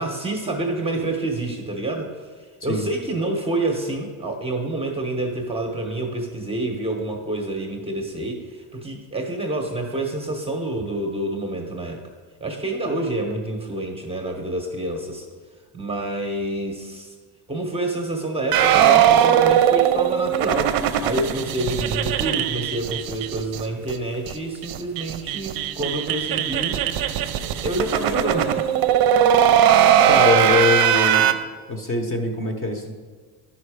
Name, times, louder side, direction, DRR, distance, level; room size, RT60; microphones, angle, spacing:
voice 1, 0.0-12.1 12.4-15.3 15.7-17.1 17.5-27.2 27.4-28.9, right 2 dB, 15° right, 2 dB, 0.9 m, -28 dB
sound 1, 18.5-23.6 23.9-24.0 24.3-24.4 24.6-31.3, right 10 dB, 50° right, 0.6 m, -19 dB
voice 2, 30.0-31.3 31.7-32.9, left 2 dB, 30° left, 4 dB, 1.0 m, -22 dB
10.5 x 5.7 x 4.8 m, 1.5 s
cardioid pair, 140°, 46 cm